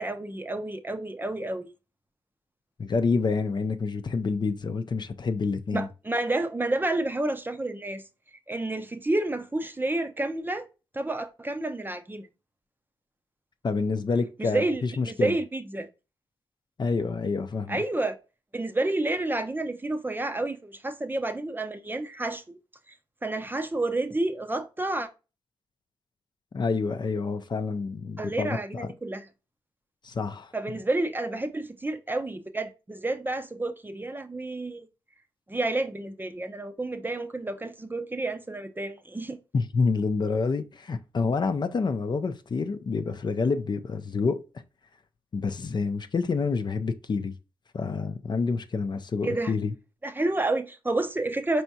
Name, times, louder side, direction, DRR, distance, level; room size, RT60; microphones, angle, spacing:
voice 1, 0.0-1.7 5.7-8.0 8.5-10.7 10.9-12.3 14.4-15.9 17.7-18.2 18.5-22.6 23.2-25.1 28.2-29.2 30.5-34.9 35.5-39.4 49.2-49.5 50.0-51.6, right 2 dB, 20° right, 0.6 m, -30 dB
voice 2, 2.8-5.9 13.6-15.3 16.8-17.8 26.5-28.9 30.0-30.5 39.5-44.4 45.3-47.3 47.7-49.7, left 4 dB, 45° left, 0.5 m, -28 dB
4.4 x 3.5 x 2.7 m
cardioid pair, 55°, 10 cm